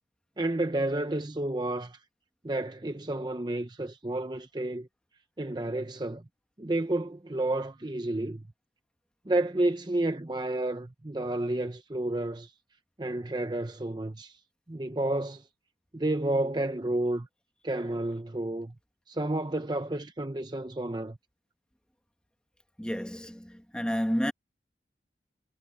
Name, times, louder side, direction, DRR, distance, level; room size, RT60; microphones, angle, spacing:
voice 1, 0.4-2.0 2.4-4.9 5.4-6.2 6.6-8.4 9.3-12.5 13.0-14.4 14.7-15.5 15.9-17.3 17.6-18.7 19.1-21.2, right 1 dB, 25° right, 0.7 m, -30 dB
voice 2, 22.8-24.3, equal, 5° left, 1.5 m, -30 dB
head